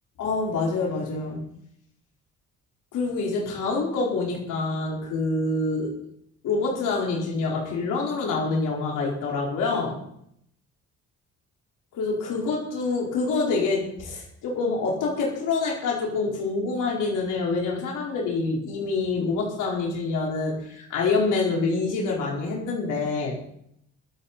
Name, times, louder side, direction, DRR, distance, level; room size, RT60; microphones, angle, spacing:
voice 1, 0.2-1.4 2.9-5.9 6.4-10.0 11.9-23.4, left 3 dB, 85° left, -2 dB, 4.6 m, -26 dB
24.5 x 8.4 x 4.3 m, 0.72 s
cardioid pair, 90°, 30 cm